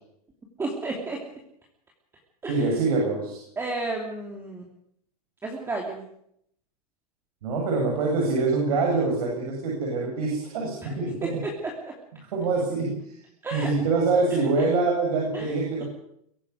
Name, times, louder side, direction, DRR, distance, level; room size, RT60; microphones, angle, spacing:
voice 1, 0.6-1.2 2.4-2.7 3.6-4.6 5.4-6.0 10.8-10.9 11.2-11.5 11.8-11.9 13.4-13.7 15.3-15.5, right 2 dB, 10° right, 0 dB, 3.0 m, -32 dB
voice 2, 2.5-3.4 7.4-11.4 12.2-13.1 13.5-15.8, right 3 dB, 75° right, -1 dB, 7.5 m, -25 dB
23.0 x 11.5 x 9.6 m, 0.74 s
supercardioid pair, 145°, 19 cm